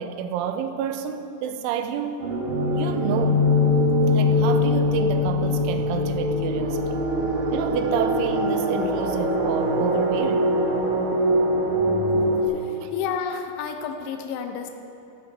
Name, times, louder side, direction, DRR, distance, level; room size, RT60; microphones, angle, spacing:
voice 1, 0.0-2.2 2.8-3.5 4.1-7.0 7.5-10.6 12.8-12.9, right 8 dB, 85° right, 8 dB, 3.1 m, -29 dB
sound 1, 2.2-12.4, left 1 dB, 60° right, 2.7 m, -22 dB
voice 2, 12.6-14.7, left 7 dB, 85° left, 5 dB, 3.1 m, -30 dB
16.0 x 11.0 x 4.4 m, 2.8 s
omnidirectional pair, 5.5 m